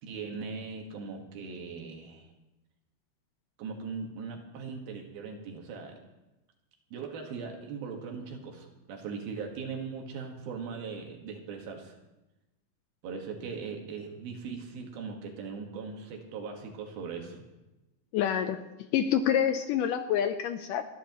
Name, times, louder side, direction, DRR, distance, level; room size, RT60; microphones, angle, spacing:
voice 1, 0.0-2.3 3.6-5.9 6.9-11.9 13.0-17.4, right 5 dB, 80° right, 2 dB, 3.4 m, -39 dB
voice 2, 18.1-18.6 18.9-20.9, left 9 dB, 80° left, 8 dB, 2.0 m, -27 dB
29.5 x 10.0 x 3.0 m, 1.0 s
omnidirectional pair, 4.3 m